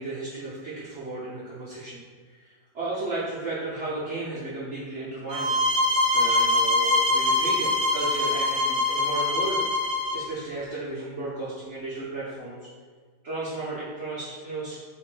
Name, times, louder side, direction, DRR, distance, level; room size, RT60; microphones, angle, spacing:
voice 1, 0.0-2.0 2.3-5.7 6.1-9.6 10.1-12.6 13.2-14.7, right 2 dB, 60° right, -9 dB, 0.7 m, -34 dB
sound 1, 5.3-10.2, left 2 dB, 75° right, 1.3 m, -23 dB
3.7 x 2.6 x 4.7 m, 1.5 s
omnidirectional pair, 2.2 m